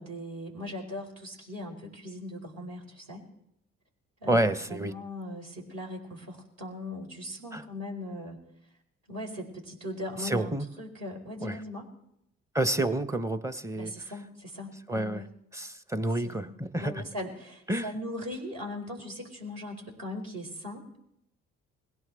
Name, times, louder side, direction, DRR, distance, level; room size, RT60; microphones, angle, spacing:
voice 1, 0.0-3.2 4.2-8.4 9.1-11.9 13.7-15.3 16.2-21.0, left 1 dB, 55° right, -1 dB, 4.6 m, -39 dB
voice 2, 4.3-4.9 7.5-7.6 10.2-10.7 11.4-11.6 12.5-13.9 14.9-15.2 15.5-17.0 17.7-17.9, right 1 dB, 10° right, 12 dB, 0.9 m, -29 dB
21.5 x 17.0 x 3.5 m, 0.80 s
hypercardioid pair, 60°, 32 cm